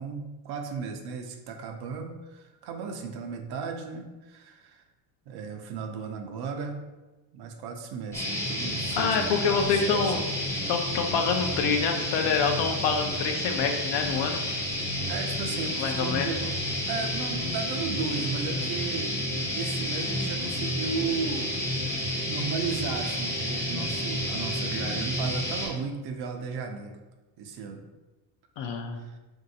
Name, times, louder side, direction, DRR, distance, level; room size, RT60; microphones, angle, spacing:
voice 1, 0.0-4.8 5.3-6.8 7.3-10.3 15.1-16.6 16.8-19.1 19.5-21.5 22.3-27.0 27.4-27.8 28.9-29.2, right 5 dB, 50° right, 4 dB, 0.5 m, -35 dB
sound 1, 8.1-25.7, left 1 dB, 5° left, 0.6 m, -30 dB
voice 2, 9.0-10.2 10.7-14.4 15.8-16.4 28.6-29.0, left 5 dB, 60° left, 4 dB, 0.5 m, -26 dB
3.0 x 2.7 x 2.6 m, 1.1 s
supercardioid pair, 110°, 49 cm